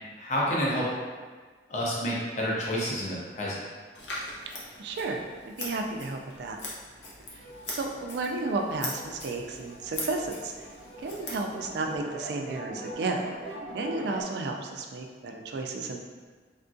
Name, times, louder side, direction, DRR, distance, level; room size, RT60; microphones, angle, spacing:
voice 1, 0.2-0.8 1.7-3.6, equal, 40° left, -5 dB, 0.5 m, -29 dB
Scissors, 3.9-12.0, left 2 dB, 80° left, 0.7 m, -41 dB
voice 2, 4.8-6.6 7.7-10.5 11.0-13.2 13.7-16.0, right 3 dB, 70° right, 3 dB, 0.3 m, -32 dB
sound 1, 7.3-14.2, right 1 dB, 25° right, 0.6 m, -43 dB
3.5 x 2.3 x 2.5 m, 1.5 s
head